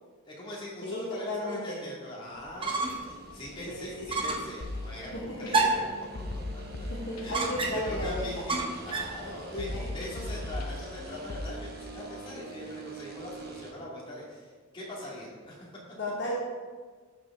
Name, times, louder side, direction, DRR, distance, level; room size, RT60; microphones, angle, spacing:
voice 1, 0.3-5.9 6.5-6.6 7.2-15.7, left 1 dB, 25° left, -5 dB, 2.1 m, -42 dB
voice 2, 0.8-1.8 3.7-4.0 4.3-4.4 5.1-5.8 6.9-8.3 9.5-9.9 16.0-16.4, left 1 dB, 55° left, -4 dB, 1.3 m, -34 dB
sound 1, 2.4-3.1 3.5-3.6 4.1-4.5 5.5-6.0 7.3-8.0 8.5-9.2, right 3 dB, 25° right, 0.8 m, -29 dB
sound 2, 2.9-13.7, right 2 dB, 45° right, 1.1 m, -46 dB
sound 3, 4.6-5.5 6.2-7.5 7.9-8.9 9.6-11.5, left 2 dB, 70° left, 0.8 m, -38 dB
13.5 x 4.8 x 3.6 m, 1.5 s
head